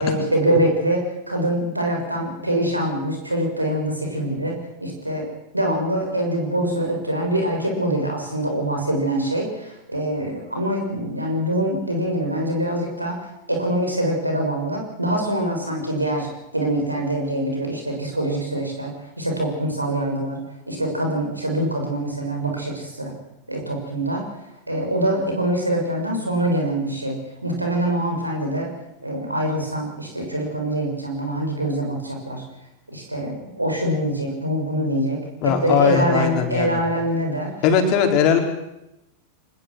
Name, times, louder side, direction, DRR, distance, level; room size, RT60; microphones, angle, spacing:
voice 1, 0.0-5.3 5.5-16.3 16.5-20.4 20.7-23.1 23.5-24.2 24.7-28.7 29.0-32.4 32.9-37.5, right 1 dB, 85° right, 1 dB, 6.5 m, -24 dB
voice 2, 35.4-36.8 37.6-38.4, left 7 dB, 40° left, 4 dB, 4.3 m, -19 dB
25.0 x 20.5 x 6.4 m, 0.89 s
figure-of-eight pair, 90°, 0 cm